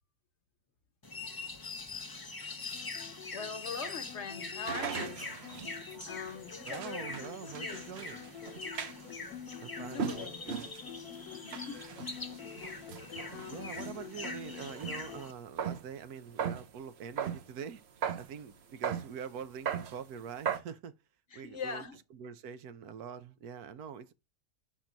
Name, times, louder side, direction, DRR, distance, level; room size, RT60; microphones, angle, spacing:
sound 1, 1.0-15.3, left 3 dB, 30° left, 0.4 m, -44 dB
sound 2, 2.7-15.2, left 9 dB, 80° left, 1.2 m, -48 dB
voice 1, 3.3-5.3 6.0-7.3 7.6-7.8 9.9-10.4 11.4-11.8 13.3-13.7 21.3-22.0, left 5 dB, 50° left, 1.2 m, -42 dB
sound 3, 4.6-15.0 15.4-15.9 16.3-17.5 18.0-18.3 18.8-19.1 19.4-20.0 20.5-20.6, right 7 dB, 55° right, 0.8 m, -39 dB
voice 2, 6.6-8.2 9.6-10.7 13.5-17.8 18.1-20.9 21.3-21.8 22.1-24.1, right 7 dB, 90° right, 1.3 m, -44 dB
5.9 x 4.2 x 5.1 m
omnidirectional pair, 1.6 m